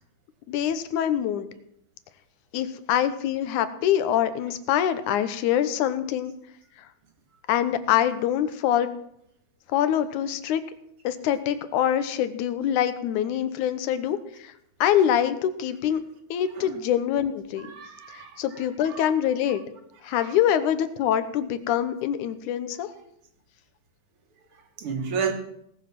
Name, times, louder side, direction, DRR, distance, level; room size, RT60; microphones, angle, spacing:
voice 1, 0.5-1.5 2.5-6.3 7.5-8.9 9.7-10.6 11.0-14.5 14.8-16.0 16.3-17.7 18.1-19.6 20.0-22.9, left 10 dB, 85° left, 12 dB, 2.4 m, -24 dB
voice 2, 17.6-19.3 20.1-20.4 24.8-25.3, right 6 dB, 50° right, 5 dB, 2.3 m, -33 dB
18.0 x 7.4 x 6.0 m, 0.75 s
omnidirectional pair, 3.4 m